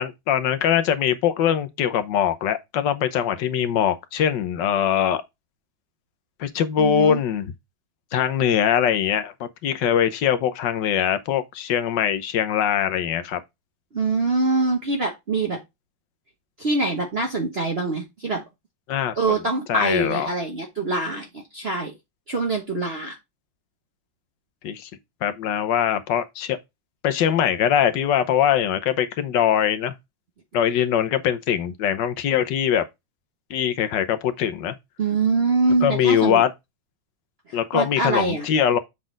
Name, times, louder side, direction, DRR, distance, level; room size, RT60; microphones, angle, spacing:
voice 1, 0.0-5.2 6.4-7.5 8.1-13.4 18.9-19.4 19.7-20.3 24.6-24.9 25.2-26.6 27.0-29.9 30.5-32.8 33.5-34.7 35.8-36.5 37.5-38.8, left 9 dB, 65° left, 1.4 m, -22 dB
voice 2, 6.8-7.2 13.9-15.6 16.6-18.4 19.2-21.9 22.3-23.1 35.0-36.4 37.5-38.5, right 3 dB, 35° right, 1.2 m, -24 dB
7.5 x 4.0 x 3.8 m
omnidirectional pair, 2.2 m